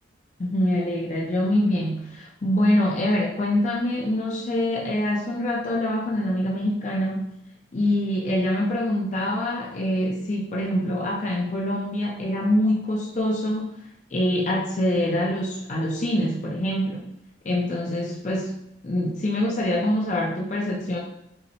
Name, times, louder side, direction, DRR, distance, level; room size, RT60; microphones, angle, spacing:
voice 1, 0.4-7.3 7.7-13.7 14.1-17.1 17.4-18.6 18.8-21.0, left 1 dB, 40° left, -3 dB, 0.4 m, -25 dB
5.5 x 2.1 x 2.8 m, 0.81 s
head